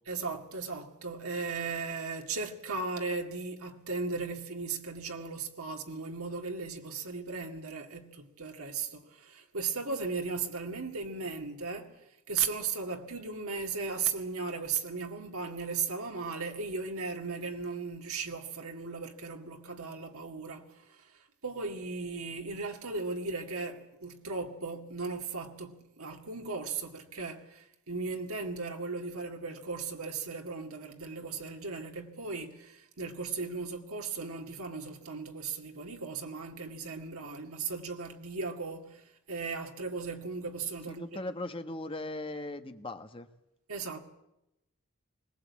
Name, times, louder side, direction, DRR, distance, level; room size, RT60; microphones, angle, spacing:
voice 1, 0.1-41.0 43.7-44.0, right 4 dB, 80° right, 2.1 m, -37 dB
voice 2, 40.9-43.3, left 2 dB, 25° left, 1.3 m, -38 dB
21.0 x 19.5 x 8.5 m
head